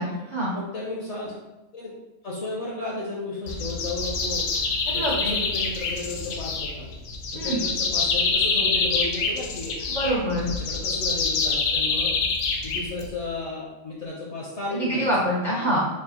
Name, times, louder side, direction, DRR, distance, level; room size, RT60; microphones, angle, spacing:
voice 1, 0.0-0.5 4.9-5.3 7.3-7.6 9.9-10.5 14.7-15.8, right 1 dB, 60° right, -6 dB, 0.4 m, -25 dB
voice 2, 0.5-1.3 1.7-1.9 2.2-6.9 7.3-9.8 10.4-12.1 12.6-15.1 15.5-15.8, left 2 dB, 60° left, -4 dB, 0.8 m, -34 dB
sound 1, 3.5-13.3, left 4 dB, 75° left, 1.2 m, -26 dB
3.7 x 2.4 x 4.0 m, 1.0 s
omnidirectional pair, 1.9 m